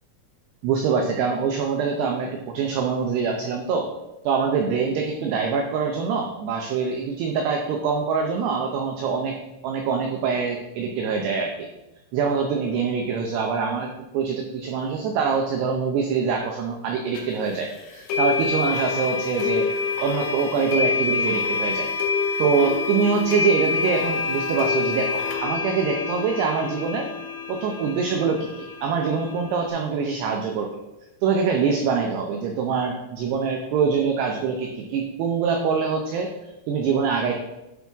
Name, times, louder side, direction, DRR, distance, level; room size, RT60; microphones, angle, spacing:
voice 1, 0.6-3.9 4.2-9.4 9.6-11.7 12.1-19.7 20.0-21.9 22.4-27.1 27.5-30.7 31.2-37.4, right 5 dB, 85° right, 3 dB, 2.3 m, -24 dB
sound 1, 17.2-17.3 18.1-29.7, left 5 dB, 90° left, 4.4 m, -27 dB
12.0 x 5.5 x 3.5 m, 0.98 s
omnidirectional pair, 5.8 m